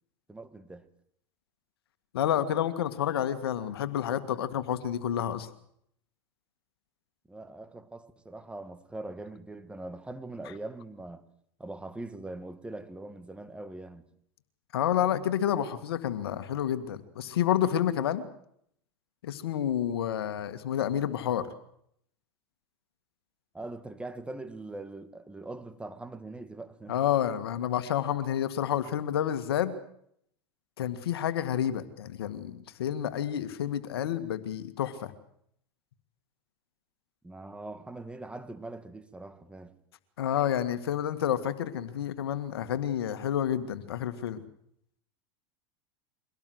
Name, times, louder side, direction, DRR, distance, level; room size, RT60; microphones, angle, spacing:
voice 1, 0.3-0.9 7.3-11.2 11.6-14.0 23.5-26.9 37.2-39.7, right 2 dB, 10° right, 1.9 m, -42 dB
voice 2, 2.1-5.5 14.7-18.2 19.2-21.5 26.9-29.7 30.8-35.1 40.2-44.4, left 10 dB, 85° left, 1.9 m, -29 dB
23.5 x 18.0 x 7.9 m
hypercardioid pair, 105°, 13 cm